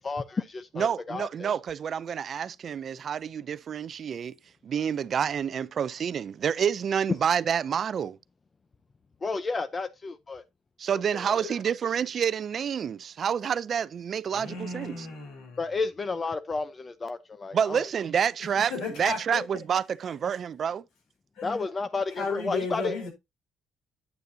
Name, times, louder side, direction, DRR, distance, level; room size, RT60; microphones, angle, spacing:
voice 1, 0.0-1.5 9.2-10.4 10.9-11.5 15.6-17.9 21.4-23.0, left 3 dB, 30° left, 0.6 m, -32 dB
voice 2, 0.8-4.4 4.6-8.2 10.8-15.1 17.5-18.7 19.0-20.8, right 8 dB, 50° right, 0.4 m, -28 dB
voice 3, 14.3-15.6 18.7-19.4 21.4-21.7 22.1-23.1, left 3 dB, 85° left, 3.8 m, -34 dB
9.3 x 8.1 x 2.7 m
cardioid pair, 105°, 0 cm